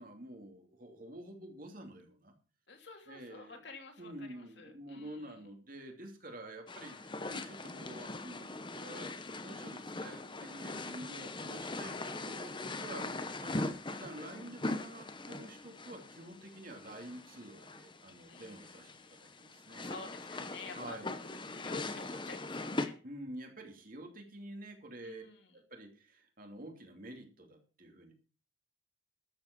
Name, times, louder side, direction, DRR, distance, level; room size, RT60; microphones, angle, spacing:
voice 1, 0.0-2.3 3.1-3.6 4.0-19.9 20.7-21.1 22.8-25.2 25.5-28.1, right 1 dB, 45° right, 3 dB, 2.9 m, -49 dB
voice 2, 2.7-5.4 11.9-12.0 18.3-19.2 19.8-23.0 25.0-25.5, left 3 dB, 60° left, 4 dB, 2.9 m, -51 dB
sound 1, 6.7-22.9, left 2 dB, 25° left, 1.0 m, -41 dB
13.0 x 8.1 x 6.1 m, 0.36 s
head